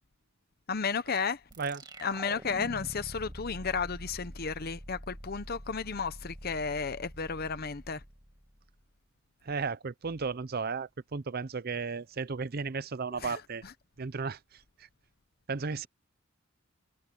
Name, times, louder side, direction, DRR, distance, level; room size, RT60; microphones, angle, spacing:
voice 1, 0.7-1.4 2.0-8.0 13.2-13.7, left 5 dB, 45° left, 0.8 m, -33 dB
sound 1, 1.5-8.8, right 1 dB, 20° right, 2.1 m, -46 dB
voice 2, 9.4-13.6 14.0-14.4 15.5-15.9, right 4 dB, 50° right, 0.6 m, -34 dB
head